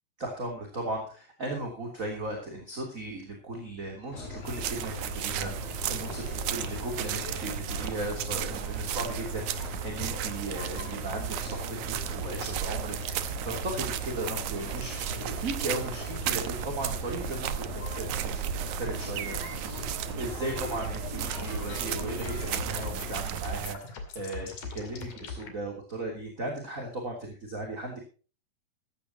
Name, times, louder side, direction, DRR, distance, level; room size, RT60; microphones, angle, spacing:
voice 1, 0.2-19.9 20.2-28.0, right 2 dB, 25° right, 1 dB, 3.0 m, -37 dB
sound 1, 4.1-23.2, left 3 dB, 85° left, 5.3 m, -40 dB
sound 2, 4.4-23.7, right 10 dB, 70° right, 2.1 m, -34 dB
sound 3, 21.2-25.5, left 5 dB, 60° left, 3.9 m, -41 dB
15.0 x 15.0 x 2.9 m, 0.37 s
omnidirectional pair, 4.0 m